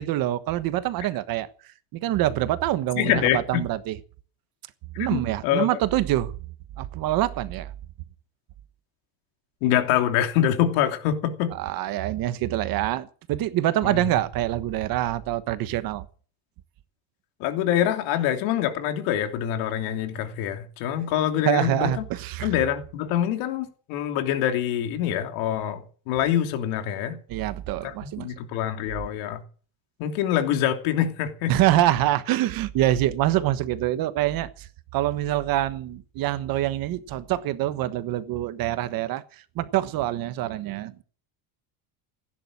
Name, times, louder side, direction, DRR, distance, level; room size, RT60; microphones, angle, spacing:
voice 1, 0.0-4.0 5.0-6.3 6.8-7.7 11.6-16.0 21.4-22.5 27.3-28.3 31.5-41.0, right 14 dB, 50° right, 1.3 m, -25 dB
voice 2, 3.0-3.6 5.0-5.8 9.6-11.5 13.8-14.0 17.4-21.9 22.4-27.2 27.8-29.4 30.0-31.5, left 10 dB, 85° left, 3.0 m, -25 dB
16.5 x 10.5 x 7.4 m
cardioid pair, 175°, 46 cm